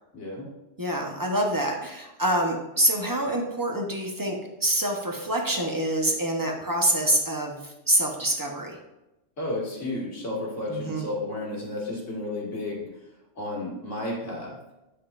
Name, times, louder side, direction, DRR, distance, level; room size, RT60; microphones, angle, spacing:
voice 1, 0.1-0.5 9.4-12.9 13.4-14.6, left 2 dB, 80° left, -3 dB, 2.2 m, -32 dB
voice 2, 0.8-8.8 10.7-11.1, right 1 dB, 20° right, 0 dB, 0.8 m, -26 dB
9.7 x 5.5 x 2.5 m, 0.96 s
omnidirectional pair, 1.2 m